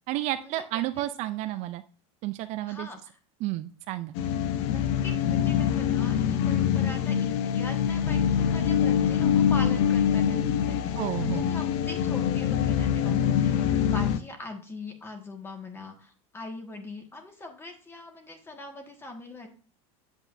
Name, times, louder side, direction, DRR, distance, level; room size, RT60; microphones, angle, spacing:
voice 1, 0.1-1.8 2.2-2.9 3.4-4.1 11.0-11.5, right 15 dB, 45° right, 11 dB, 0.4 m, -31 dB
voice 2, 2.7-3.1 4.6-19.5, left 2 dB, 15° left, 4 dB, 1.7 m, -42 dB
sound 1, 4.2-14.2, left 8 dB, 60° left, 0.8 m, -25 dB
8.1 x 7.9 x 2.6 m, 0.40 s
supercardioid pair, 145°, 17 cm